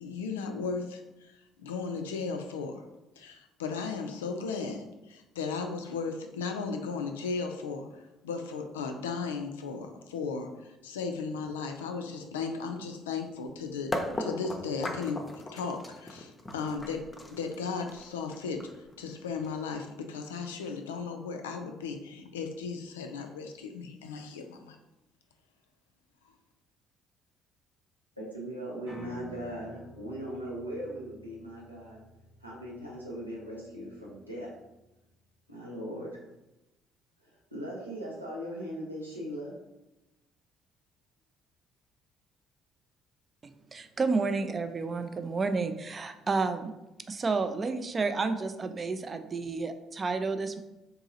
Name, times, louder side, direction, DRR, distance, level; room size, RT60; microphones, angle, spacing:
voice 1, 0.0-2.8 3.2-17.0 17.3-18.6 19.0-24.8, left 5 dB, 75° left, 4 dB, 0.3 m, -36 dB
sound 1, 13.9-19.8, left 1 dB, 25° left, 0.6 m, -37 dB
voice 2, 28.2-32.0 32.4-34.5 35.5-36.2 37.2-39.6, equal, 90° right, -5 dB, 0.8 m, -39 dB
Piano, 28.9-35.0, right 2 dB, 65° right, 1.3 m, -51 dB
voice 3, 43.7-46.7 47.1-50.6, right 4 dB, 30° right, 9 dB, 0.3 m, -30 dB
3.8 x 2.7 x 2.7 m, 0.95 s
figure-of-eight pair, 50°, 0 cm